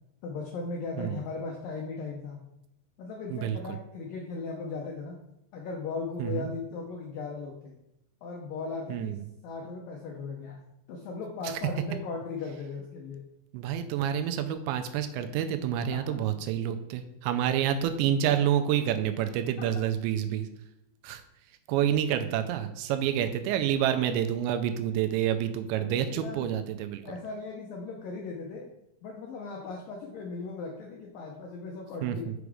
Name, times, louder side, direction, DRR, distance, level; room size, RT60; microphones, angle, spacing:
voice 1, 0.2-2.4 3.0-5.2 5.5-7.8 8.2-9.2 9.4-10.6 10.9-13.2 15.9-16.2 25.8-26.6 27.0-28.7 29.0-32.3, left 4 dB, 80° left, 0 dB, 2.0 m, -37 dB
voice 2, 6.2-6.5 8.9-9.2 13.5-20.5 21.0-21.2 21.7-27.0 32.0-32.3, right 10 dB, 80° right, 8 dB, 2.8 m, -28 dB
6.6 x 5.9 x 4.9 m, 0.84 s
omnidirectional pair, 5.2 m